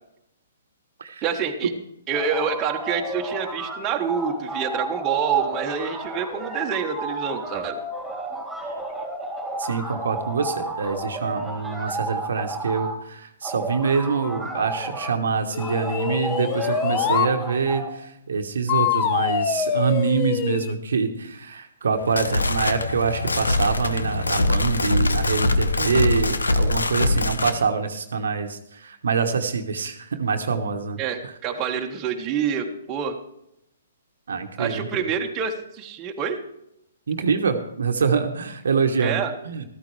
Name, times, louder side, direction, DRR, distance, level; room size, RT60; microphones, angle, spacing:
voice 1, 1.2-1.7 2.1-7.8 31.0-33.2 34.6-36.4 39.0-39.4, right 7 dB, 25° right, 2 dB, 1.4 m, -27 dB
sound 1, 2.1-3.8 4.1-13.0 13.4-15.2 15.6-17.9, right 2 dB, ahead, 3.5 m, -32 dB
voice 2, 9.6-31.0 34.3-35.0 37.1-39.6, right 5 dB, 70° right, 5 dB, 1.2 m, -25 dB
sound 2, 15.5-17.3 18.7-20.7, left 9 dB, 30° left, 0.9 m, -24 dB
sound 3, 21.9-27.6, left 2 dB, 85° left, 0.9 m, -23 dB
13.5 x 13.5 x 3.3 m, 0.79 s
figure-of-eight pair, 125°, 0 cm